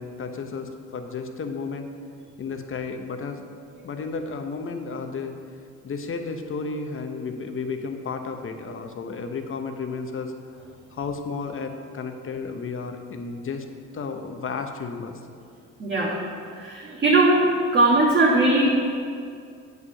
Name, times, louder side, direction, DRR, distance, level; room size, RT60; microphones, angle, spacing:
voice 1, 0.0-1.9 2.4-3.5 3.8-5.4 5.8-10.3 10.9-13.6 13.9-15.2, left 4 dB, 45° left, 5 dB, 0.9 m, -32 dB
voice 2, 15.8-16.2 16.5-17.5 17.7-18.7, right 2 dB, 35° right, -7 dB, 1.8 m, -19 dB
8.2 x 5.0 x 6.8 m, 2.3 s
cardioid pair, 90°, 30 cm